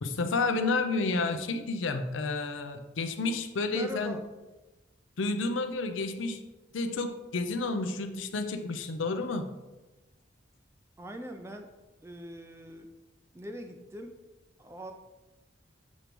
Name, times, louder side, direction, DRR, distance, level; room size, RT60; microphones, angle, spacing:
voice 1, 0.0-4.2 5.2-6.4 6.7-9.5, left 3 dB, 80° left, 7 dB, 0.6 m, -30 dB
voice 2, 3.7-4.2 11.0-11.7 12.0-12.9 13.3-14.1 14.6-14.9, equal, 15° right, 5 dB, 0.4 m, -41 dB
7.3 x 3.0 x 5.1 m, 1.1 s
head